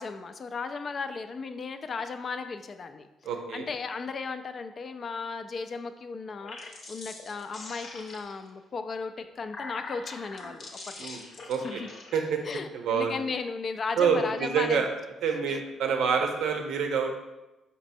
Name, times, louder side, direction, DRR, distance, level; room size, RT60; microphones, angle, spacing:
voice 1, 0.0-11.1 11.6-11.9 12.4-14.8 15.5-15.6, left 4 dB, 45° left, 9 dB, 0.3 m, -36 dB
voice 2, 3.3-3.7 11.0-11.2 11.5-11.8 12.1-12.4 12.7-13.2 14.0-14.9 15.2-17.1, right 6 dB, 80° right, 4 dB, 0.6 m, -27 dB
sound 1, 6.3-8.5 9.2-12.2, left 2 dB, 60° left, 0.8 m, -43 dB
4.3 x 4.1 x 2.6 m, 1.0 s
cardioid pair, 90°, 0 cm